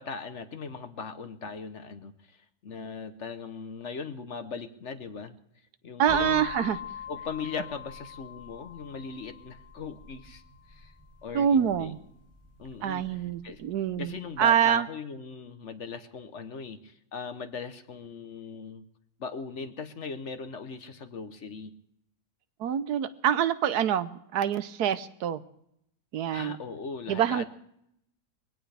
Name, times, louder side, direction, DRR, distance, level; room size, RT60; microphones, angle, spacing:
voice 1, 0.0-5.4 5.8-6.5 7.1-10.4 10.7-10.9 11.2-11.9 12.6-13.6 14.0-18.8 19.2-21.7 26.3-27.5, left 5 dB, 50° left, 9 dB, 1.2 m, -39 dB
voice 2, 6.0-6.8 11.3-12.0 12.8-14.9 22.6-25.4 26.1-26.6 27.1-27.5, right 9 dB, 85° right, 13 dB, 1.3 m, -26 dB
sound 1, 6.1-13.9, left 7 dB, 15° right, 3.9 m, -43 dB
22.5 x 17.0 x 3.4 m, 0.74 s
omnidirectional pair, 1.6 m